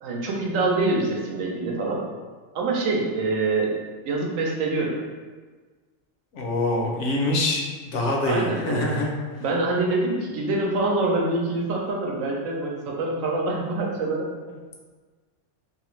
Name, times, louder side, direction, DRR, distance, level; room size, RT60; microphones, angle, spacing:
voice 1, 0.0-2.0 2.5-3.8 4.1-5.0 8.3-8.9 9.4-14.3, right 2 dB, 85° right, -1 dB, 1.0 m, -25 dB
voice 2, 6.3-7.6 7.9-9.1, left 1 dB, 70° left, -1 dB, 0.9 m, -24 dB
2.7 x 2.4 x 3.0 m, 1.4 s
omnidirectional pair, 1.3 m